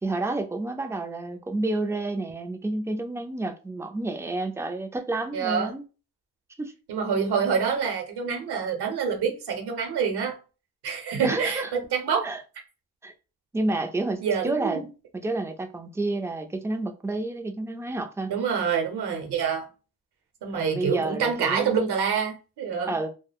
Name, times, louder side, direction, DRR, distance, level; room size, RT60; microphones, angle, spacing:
voice 1, 0.0-5.8 6.6-6.7 11.2-11.7 12.2-12.4 13.0-13.1 13.5-14.8 15.2-18.3 20.5-21.8 22.9-23.1, right 2 dB, 10° right, 0.3 m, -30 dB
voice 2, 5.3-5.7 6.9-10.4 10.8-12.3 14.2-14.8 18.3-19.7 20.4-23.0, right 6 dB, 90° right, 0.8 m, -26 dB
3.3 x 2.1 x 2.3 m
cardioid pair, 80°, 38 cm